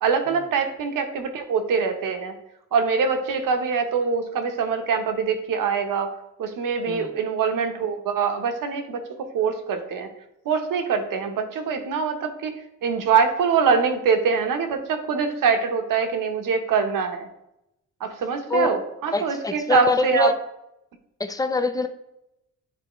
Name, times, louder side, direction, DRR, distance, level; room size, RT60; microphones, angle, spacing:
voice 1, 0.0-2.3 2.7-6.1 6.4-9.0 9.3-10.1 10.4-12.5 12.8-17.3 18.0-20.3, right 5 dB, 80° right, 6 dB, 1.0 m, -24 dB
voice 2, 6.9-7.2 18.5-18.7 19.1-20.3 21.2-21.9, left 3 dB, 10° left, 9 dB, 0.3 m, -24 dB
9.6 x 4.2 x 3.1 m, 0.85 s
wide cardioid pair, 155°, 32 cm